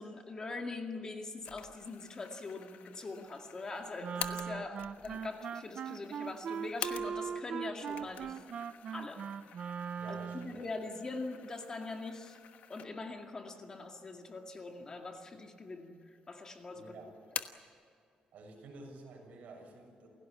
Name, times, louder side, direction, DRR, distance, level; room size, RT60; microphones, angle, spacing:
voice 1, 0.0-8.3 8.9-9.3 10.1-12.4 12.7-16.9, left 3 dB, 25° left, 3 dB, 2.2 m, -43 dB
sound 1, 1.4-7.4 7.8-13.2 13.6-13.7 14.6-15.2 15.6-16.3 16.6-17.7, left 9 dB, 75° left, 1.2 m, -47 dB
Wind instrument woodwind instrument, 4.0-10.6, right 7 dB, 50° right, 0.6 m, -40 dB
voice 2, 10.0-10.6 16.7-17.2 18.3-20.1, right 3 dB, 70° right, 1 dB, 7.2 m, -51 dB
29.0 x 17.0 x 8.7 m, 2.5 s
cardioid pair, 165°, 3 cm